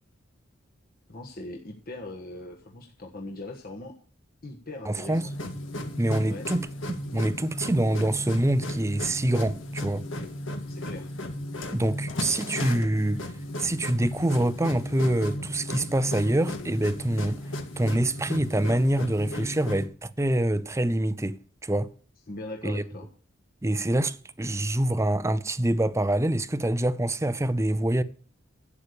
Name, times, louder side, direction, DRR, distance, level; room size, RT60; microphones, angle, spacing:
voice 1, 1.1-3.9 4.4-5.3 6.2-6.5 10.7-11.1 22.3-23.0, left 2 dB, 50° left, 1.4 m, -40 dB
voice 2, 4.9-5.2 6.0-10.0 11.7-13.2 13.6-17.4 17.8-21.9 22.6-22.8 23.6-28.0, right 1 dB, 15° right, 0.6 m, -25 dB
sound 1, 5.0-19.9, left 1 dB, 75° left, 1.8 m, -35 dB
12.0 x 8.4 x 6.7 m
head